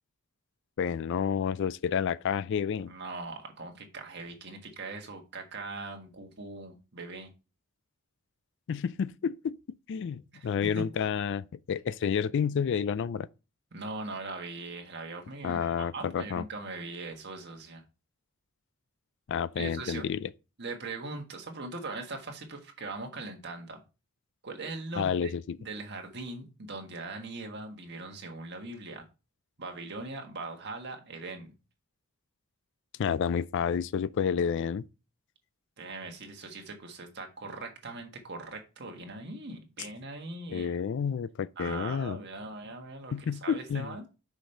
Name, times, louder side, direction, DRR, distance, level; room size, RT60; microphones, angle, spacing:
voice 1, 0.8-2.9 8.7-9.6 9.9-13.3 15.4-16.4 19.3-20.3 25.0-25.6 33.0-34.8 40.5-42.2 43.1-43.9, left 7 dB, 60° left, 0.3 m, -30 dB
voice 2, 2.9-7.3 10.3-10.8 13.7-17.8 19.6-20.1 20.6-23.8 24.4-25.3 25.6-29.0 29.6-31.5 35.8-40.7 41.6-44.0, right 3 dB, 50° right, 1.5 m, -40 dB
6.3 x 5.1 x 4.3 m
head